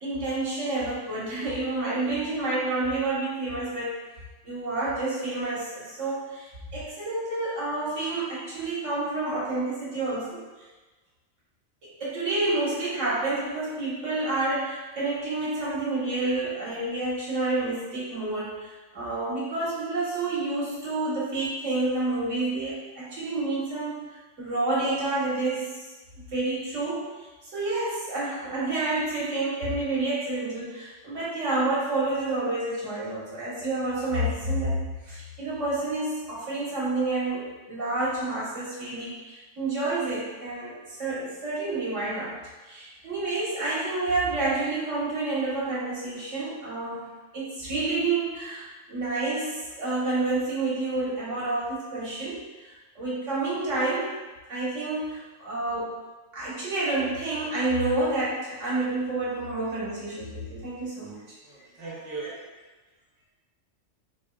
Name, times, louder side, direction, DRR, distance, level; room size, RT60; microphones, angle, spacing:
voice 1, 0.0-3.9 4.4-10.4 11.8-24.0 24.4-25.9 26.1-42.4 42.6-54.1 54.5-56.0 56.3-61.1 62.2-62.3, right 2 dB, 80° right, -7 dB, 1.7 m, -29 dB
voice 2, 61.4-62.5, right 3 dB, 65° right, -8 dB, 1.1 m, -38 dB
6.1 x 3.0 x 2.2 m, 1.2 s
omnidirectional pair, 1.3 m